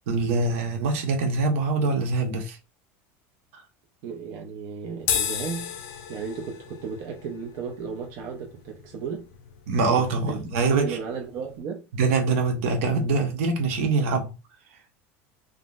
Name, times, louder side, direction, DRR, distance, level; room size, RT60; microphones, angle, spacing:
voice 1, 0.1-2.6 3.5-3.6 9.7-11.0 11.9-14.4, right 3 dB, 75° right, 1.0 m, -24 dB
voice 2, 4.0-5.8 6.1-9.3 10.0-10.4 10.8-11.9, right 6 dB, 45° right, 0.6 m, -34 dB
sound 1, 5.0-11.6, left 9 dB, 70° left, 0.6 m, -35 dB
3.6 x 2.0 x 2.4 m
cardioid pair, 165°, 7 cm